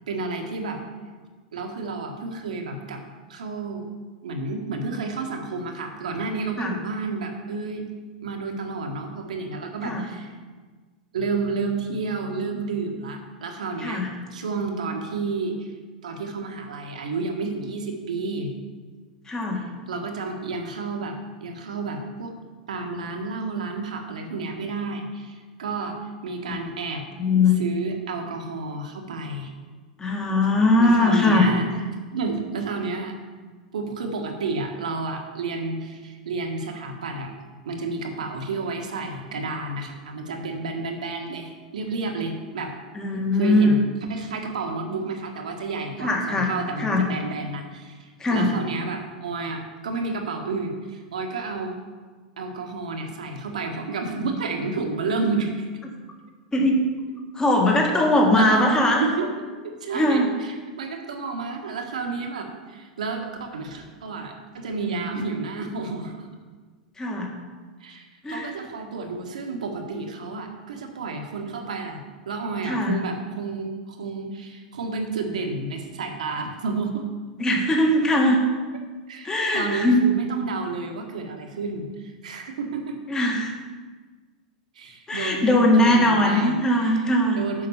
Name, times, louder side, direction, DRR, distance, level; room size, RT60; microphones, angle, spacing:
voice 1, 0.1-0.8 1.5-3.0 3.3-3.9 4.2-7.8 8.2-10.3 11.1-14.0 14.3-15.7 16.0-18.5 19.9-22.3 22.7-26.0 26.2-27.0 27.6-29.5 30.8-31.7 32.1-33.2 33.7-37.4 37.6-42.7 43.4-51.7 52.4-55.7 58.3-59.3 59.6-66.3 67.8-77.0 79.1-83.0 84.7-87.0 87.3-87.7, right 3 dB, 70° right, 3 dB, 1.5 m, -31 dB
voice 2, 13.8-14.1 19.3-19.7 26.5-26.6 27.2-27.5 30.0-31.5 42.9-43.8 46.0-47.0 48.2-48.5 56.5-56.8 57.3-59.0 59.9-60.3 67.0-67.3 68.2-68.5 72.6-73.0 77.4-78.4 79.2-80.0 83.1-83.5 85.1-87.5, left 1 dB, 15° left, 1 dB, 1.7 m, -20 dB
7.5 x 5.9 x 7.0 m, 1.4 s
figure-of-eight pair, 95°, 4 cm